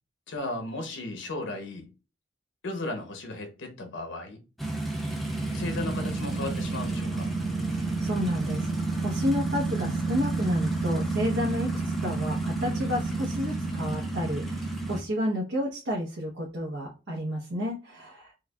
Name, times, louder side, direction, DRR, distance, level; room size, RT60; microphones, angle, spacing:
voice 1, 0.3-1.9 2.6-4.4 5.5-7.3, left 2 dB, 85° left, 0.8 m, -35 dB
sound 1, 4.6-15.0, right 2 dB, ahead, 0.6 m, -30 dB
voice 2, 7.7-8.7 9.0-11.7 12.0-18.3, equal, 80° right, 0.9 m, -31 dB
4.6 x 2.4 x 2.3 m
head